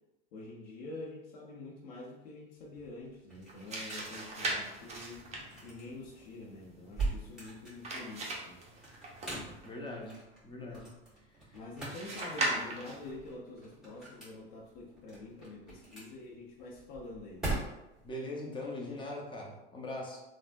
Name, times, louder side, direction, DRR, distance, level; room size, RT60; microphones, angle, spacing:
voice 1, 0.3-5.3 5.6-8.6 11.5-17.5, left 2 dB, 70° left, -4 dB, 0.7 m, -46 dB
sound 1, 2.6-18.1, right 2 dB, ahead, 1.5 m, -43 dB
sound 2, 3.4-9.7 11.9-13.1, right 2 dB, 20° right, 0.6 m, -39 dB
voice 2, 9.6-11.0 11.3-11.6 18.0-20.2, left 1 dB, 15° left, -2 dB, 0.7 m, -41 dB
3.3 x 2.0 x 2.5 m, 0.95 s
supercardioid pair, 115°, 31 cm